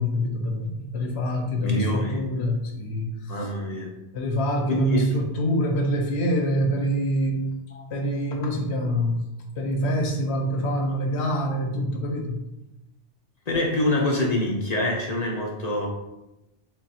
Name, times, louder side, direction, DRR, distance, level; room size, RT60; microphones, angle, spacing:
voice 1, 0.0-3.5 4.1-7.6 7.9-9.2 9.6-12.4, equal, 70° left, 2 dB, 0.9 m, -25 dB
voice 2, 1.6-2.2 3.3-3.9 4.7-5.0 7.7-7.9 13.5-15.9, left 1 dB, 50° left, -1 dB, 0.5 m, -25 dB
3.5 x 2.3 x 4.0 m, 0.93 s
omnidirectional pair, 1.2 m